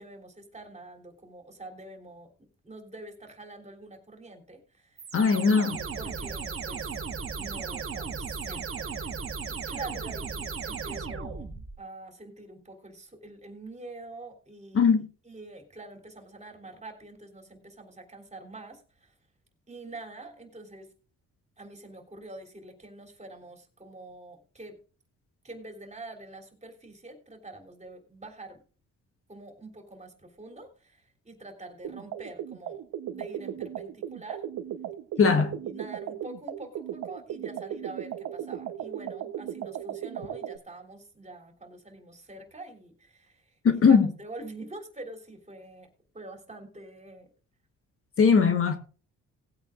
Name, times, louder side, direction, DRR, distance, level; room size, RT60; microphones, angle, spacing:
voice 1, 0.0-2.3 2.6-5.0 5.5-7.0 7.3-9.2 9.5-19.1 19.7-20.9 21.6-24.8 25.4-28.6 29.3-32.8 33.1-34.5 35.1-45.9 46.1-47.3, right 2 dB, 20° right, 3.4 m, -45 dB
sound 1, 5.0-11.8, right 5 dB, 45° right, 1.9 m, -36 dB
voice 2, 5.1-5.8 14.7-15.1 35.2-35.5 43.6-44.1 48.2-48.8, left 5 dB, 45° left, 1.3 m, -20 dB
sound 2, 31.8-40.6, right 10 dB, 75° right, 1.0 m, -36 dB
19.0 x 8.8 x 2.5 m
cardioid pair, 90°, 30 cm